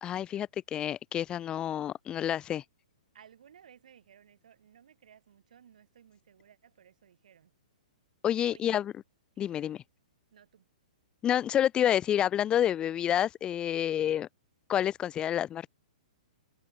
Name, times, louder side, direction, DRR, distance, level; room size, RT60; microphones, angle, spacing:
voice 1, 0.0-2.6 8.2-8.9 9.4-9.8 11.2-14.3 14.7-15.7, left 10 dB, 20° left, 0.9 m, -28 dB
voice 2, 3.1-7.5 8.5-8.7 9.3-9.5 10.3-10.6, right 8 dB, 70° right, 6.4 m, -58 dB
hypercardioid pair, 130°, 4 cm